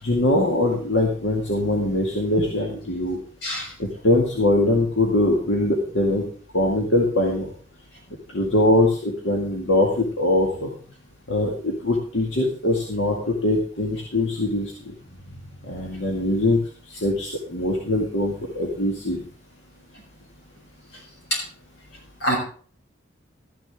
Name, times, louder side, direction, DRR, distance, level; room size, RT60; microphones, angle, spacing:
voice 1, 0.0-3.2 3.8-6.2 6.5-7.5 8.3-10.7 11.3-14.9 15.6-16.6 16.9-19.2, left 1 dB, 85° left, -1 dB, 2.2 m, -22 dB
voice 2, 3.4-3.7 21.3-21.4 22.2-22.4, right 1 dB, 65° left, -1 dB, 6.2 m, -24 dB
13.5 x 10.5 x 3.8 m, 0.42 s
head